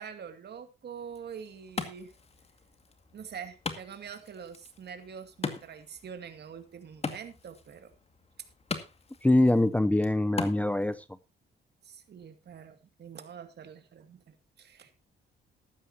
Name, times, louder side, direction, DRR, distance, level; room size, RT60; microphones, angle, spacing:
voice 1, 0.0-2.1 3.1-7.9 11.8-14.9, right 7 dB, 55° right, 2.3 m, -45 dB
Wood, 1.0-11.0, left 4 dB, 30° left, 2.1 m, -41 dB
voice 2, 9.2-11.0, left 1 dB, 5° left, 0.6 m, -23 dB
14.5 x 12.5 x 2.8 m
cardioid pair, 90°, 20 cm